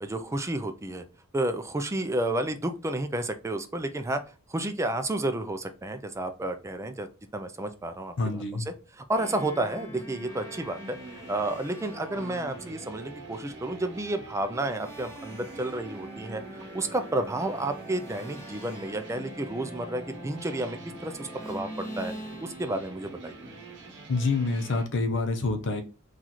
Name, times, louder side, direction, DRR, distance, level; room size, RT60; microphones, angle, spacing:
voice 1, 0.0-1.0 1.3-4.2 4.5-11.0 11.3-22.1 22.4-23.3, right 1 dB, 15° right, 0.3 m, -31 dB
voice 2, 8.2-8.7 24.1-25.8, left 3 dB, 60° left, 0.6 m, -27 dB
sound 1, 9.1-12.8 14.5-22.9, equal, 15° left, 0.8 m, -44 dB
sound 2, 10.3-24.9, right 2 dB, 55° right, 0.9 m, -45 dB
3.0 x 2.4 x 4.0 m
head